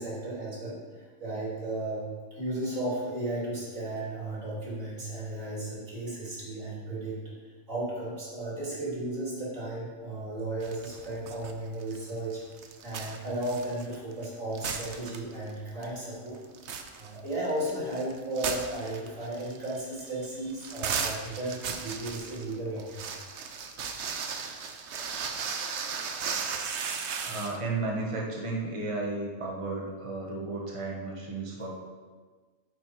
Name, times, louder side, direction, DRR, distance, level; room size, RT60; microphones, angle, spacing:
voice 1, 0.0-2.1 2.4-12.4 12.8-16.4 17.0-23.1, right 1 dB, 90° right, -6 dB, 3.4 m, -35 dB
sound 1, 10.6-11.5 11.8-14.3 14.5-15.5 15.8-15.9 16.3-27.6, right 6 dB, 65° right, 1.0 m, -36 dB
voice 2, 27.2-31.8, right 3 dB, 25° right, -2 dB, 1.3 m, -33 dB
8.5 x 7.7 x 4.7 m, 1.4 s
omnidirectional pair, 1.3 m